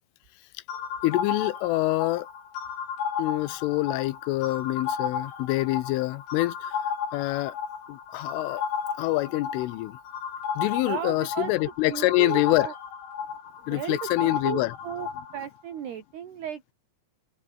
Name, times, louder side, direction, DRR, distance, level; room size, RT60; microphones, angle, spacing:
sound 1, 0.7-15.5, left 7 dB, 70° left, 7.0 m, -34 dB
voice 1, 1.0-2.3 3.2-6.8 7.1-7.6 7.9-8.6 9.0-10.0 10.6-12.7 13.7-14.7, left 18 dB, 85° left, 3.4 m, -26 dB
voice 2, 10.8-11.5 11.9-12.7 13.7-16.7, right 9 dB, 60° right, 4.5 m, -35 dB
omnidirectional pair, 5.7 m